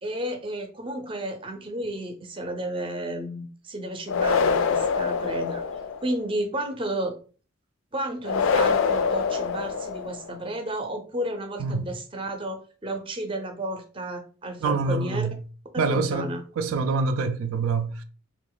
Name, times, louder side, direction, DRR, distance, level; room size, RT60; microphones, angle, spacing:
voice 1, 0.0-5.6 6.0-7.2 7.9-15.3 15.7-16.4, right 1 dB, 25° right, 0.5 m, -32 dB
sound 1, 4.1-6.1 8.2-10.3, left 5 dB, 70° left, 0.4 m, -25 dB
voice 2, 14.6-15.4 15.8-18.0, right 4 dB, 90° right, 0.4 m, -26 dB
2.9 x 2.4 x 3.8 m
head